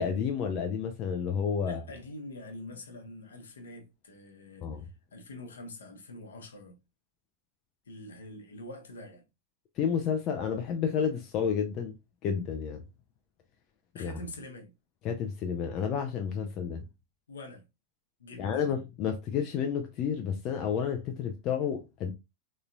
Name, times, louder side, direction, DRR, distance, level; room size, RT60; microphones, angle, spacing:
voice 1, 0.0-1.8 4.6-4.8 9.8-12.0 12.2-12.8 14.0-14.1 15.0-16.8 18.4-22.1, left 7 dB, 35° left, 0.4 m, -30 dB
voice 2, 1.6-6.8 7.9-9.2 13.9-14.7 17.3-17.6 18.2-18.8, left 1 dB, 70° left, 0.9 m, -45 dB
3.7 x 3.1 x 2.2 m
figure-of-eight pair, 90°, 0 cm